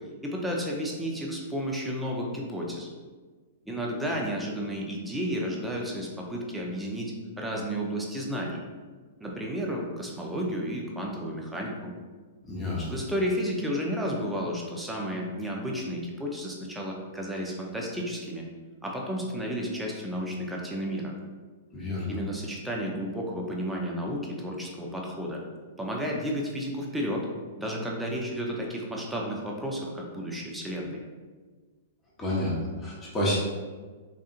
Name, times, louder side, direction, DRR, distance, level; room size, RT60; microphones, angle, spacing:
voice 1, 0.2-2.9 3.7-8.6 9.2-11.9 12.9-18.4 18.8-21.1 22.1-25.4 25.8-27.3 27.6-31.0, equal, 5° right, -2 dB, 0.6 m, -32 dB
voice 2, 12.4-12.9 21.7-22.2 32.2-33.4, left 1 dB, 15° left, -5 dB, 1.0 m, -29 dB
3.6 x 2.6 x 2.5 m, 1.4 s
hypercardioid pair, 115°, 0 cm